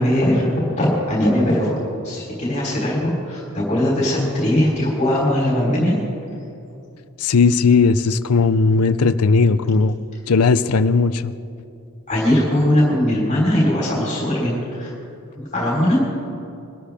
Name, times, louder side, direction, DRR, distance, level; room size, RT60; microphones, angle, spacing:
voice 1, 0.0-5.9 12.1-14.9 15.5-16.0, left 1 dB, 35° left, -4 dB, 3.7 m, -20 dB
voice 2, 7.2-9.9 10.3-11.3, left 4 dB, 80° left, 13 dB, 0.6 m, -16 dB
23.0 x 13.0 x 3.5 m, 2.6 s
head